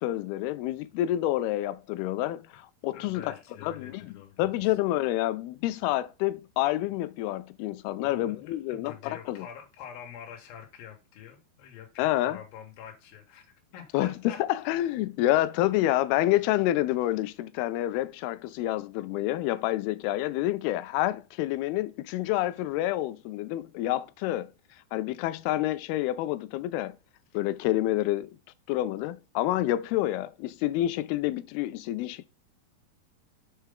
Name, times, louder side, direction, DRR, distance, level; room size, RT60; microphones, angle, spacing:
voice 1, 0.0-9.5 12.0-12.5 13.9-24.5 24.9-27.0 27.3-28.3 28.7-32.3, left 15 dB, 90° left, 2.5 m, -28 dB
voice 2, 2.9-4.7 7.6-7.7 8.0-13.5 13.7-14.4, left 8 dB, 75° left, 3.1 m, -46 dB
6.7 x 4.5 x 3.6 m
omnidirectional pair, 4.4 m